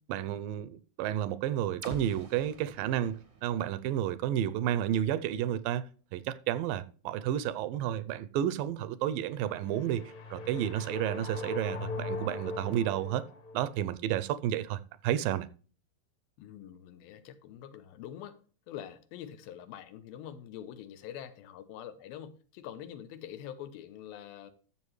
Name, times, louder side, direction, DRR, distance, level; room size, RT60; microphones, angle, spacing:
voice 1, 0.1-5.8 6.1-10.0 10.3-13.2 13.5-15.5, right 11 dB, 80° right, 2.2 m, -31 dB
sound 1, 1.8-5.7, right 3 dB, 50° right, 0.7 m, -48 dB
sound 2, 9.4-13.7, left 3 dB, 45° left, 2.2 m, -40 dB
voice 2, 16.4-18.4 18.7-24.5, left 10 dB, 90° left, 2.7 m, -45 dB
12.5 x 7.3 x 3.1 m
omnidirectional pair, 4.2 m